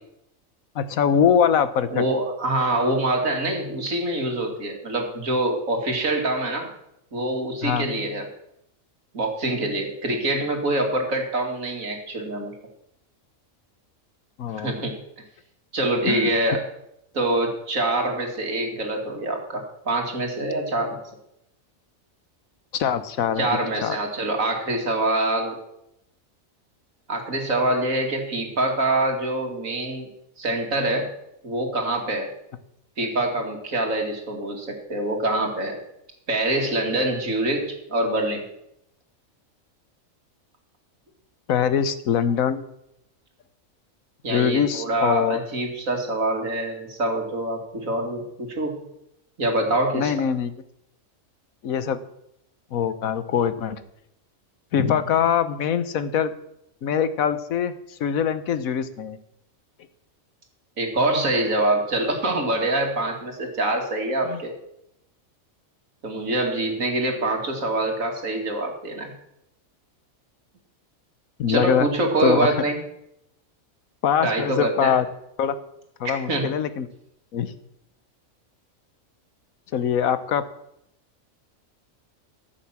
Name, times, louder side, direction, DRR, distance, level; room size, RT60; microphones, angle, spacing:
voice 1, 0.7-2.0 7.6-7.8 14.4-14.7 16.1-16.3 22.7-23.5 23.8-24.0 41.5-42.6 44.3-45.4 49.9-50.5 51.6-52.0 52.7-53.8 54.7-56.3 56.8-59.2 64.2-64.4 71.4-71.9 72.2-72.5 74.0-75.0 75.4-75.6 76.0-76.9 77.3-77.5 79.7-80.4, left 8 dB, 85° left, 13 dB, 1.3 m, -23 dB
voice 2, 1.9-6.7 7.1-8.3 9.1-12.5 14.6-15.0 15.7-16.6 17.1-21.0 23.4-25.6 27.1-30.1 30.4-31.1 31.4-32.3 33.0-35.8 36.3-38.4 44.2-48.8 49.4-50.1 60.8-64.5 66.0-69.1 71.5-72.8 74.2-74.9 76.3-76.5, right 2 dB, 80° right, 2 dB, 2.8 m, -25 dB
14.0 x 7.3 x 7.3 m, 0.79 s
omnidirectional pair, 1.4 m